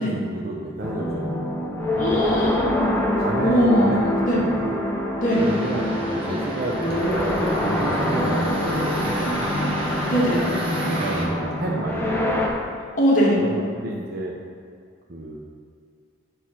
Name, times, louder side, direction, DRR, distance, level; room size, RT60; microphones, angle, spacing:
voice 1, 0.0-1.7 3.2-4.8 5.4-10.0 10.9-12.5 13.4-14.3 15.1-15.4, right 2 dB, 55° right, -2 dB, 0.7 m, -31 dB
sound 1, 0.8-12.5, left 1 dB, 10° left, 0.9 m, -25 dB
voice 2, 2.0-2.7 3.4-3.9 4.3-4.4 5.2-5.4 10.1-10.4 13.0-13.4, equal, 45° left, -5 dB, 1.8 m, -20 dB
graffito uccello masaccio, 5.3-11.2, right 1 dB, 30° right, 1.5 m, -31 dB
8.3 x 6.4 x 4.3 m, 2.3 s
head